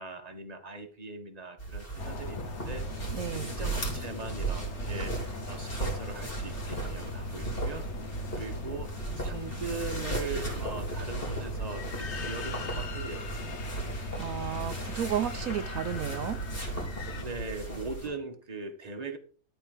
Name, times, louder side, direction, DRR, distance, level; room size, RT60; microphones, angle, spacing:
voice 1, 0.0-2.8 3.3-7.9 8.3-13.8 17.1-19.2, right 3 dB, 30° right, 1.6 m, -40 dB
sound 1, 1.6-18.1, right 3 dB, 40° left, 4.0 m, -36 dB
sound 2, 2.0-17.2, left 4 dB, 55° left, 1.3 m, -40 dB
voice 2, 3.1-3.5 14.2-16.4, right 9 dB, 80° right, 1.1 m, -33 dB
13.0 x 4.5 x 6.7 m
omnidirectional pair, 1.4 m